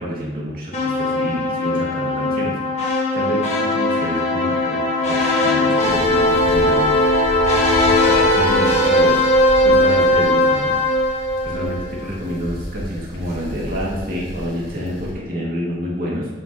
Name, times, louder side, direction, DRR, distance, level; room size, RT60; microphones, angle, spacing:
voice 1, 0.0-6.9 7.9-9.2 9.6-10.8 11.4-16.3, equal, 55° right, -5 dB, 2.4 m, -28 dB
sound 1, 0.7-12.0, left 1 dB, 40° left, 1.5 m, -18 dB
sound 2, 5.8-15.1, equal, 75° left, 2.4 m, -33 dB
7.8 x 7.7 x 3.0 m, 1.1 s
head